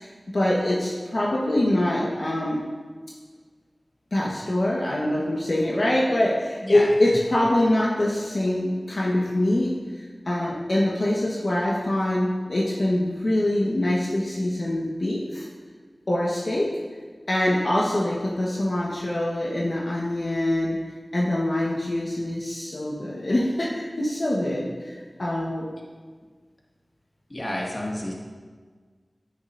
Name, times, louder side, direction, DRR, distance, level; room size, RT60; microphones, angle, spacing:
voice 1, 0.0-2.6 4.1-9.7 10.3-15.5 16.1-16.7 17.3-20.8 21.1-25.7, left 1 dB, 65° left, -5 dB, 1.3 m, -24 dB
voice 2, 27.3-28.1, left 1 dB, 35° left, -3 dB, 2.0 m, -30 dB
10.0 x 9.8 x 2.6 m, 1.5 s
wide cardioid pair, 50°, 0 cm